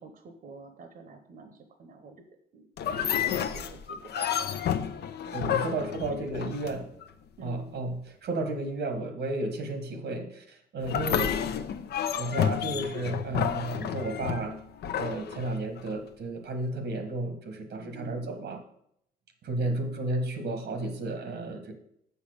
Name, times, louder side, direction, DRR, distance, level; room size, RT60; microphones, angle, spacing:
voice 1, 0.0-2.2 2.5-4.6 4.9-6.2 7.4-7.7 17.8-18.4 19.6-20.0, right 3 dB, 55° right, 6 dB, 0.9 m, -48 dB
sound 1, 2.8-7.1 10.8-15.9, left 9 dB, 75° left, 0.7 m, -30 dB
voice 2, 5.3-6.8 7.4-11.3 12.2-14.5 14.9-18.6 19.4-21.7, right 2 dB, 90° right, 5 dB, 1.6 m, -33 dB
7.0 x 5.7 x 6.5 m, 0.71 s
cardioid pair, 130°, 17 cm